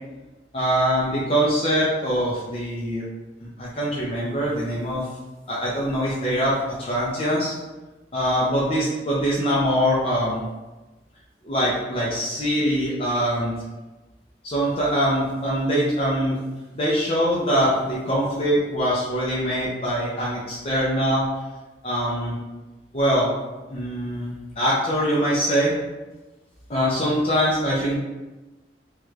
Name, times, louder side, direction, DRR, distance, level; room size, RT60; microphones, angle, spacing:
voice 1, 0.5-3.0 3.4-5.1 5.5-7.5 8.1-10.5 11.4-13.5 14.4-16.4 16.7-21.3 21.8-22.4 22.9-23.3 23.7-25.7 26.7-27.9, equal, 35° left, -6 dB, 0.6 m, -23 dB
3.2 x 2.4 x 3.2 m, 1.1 s
head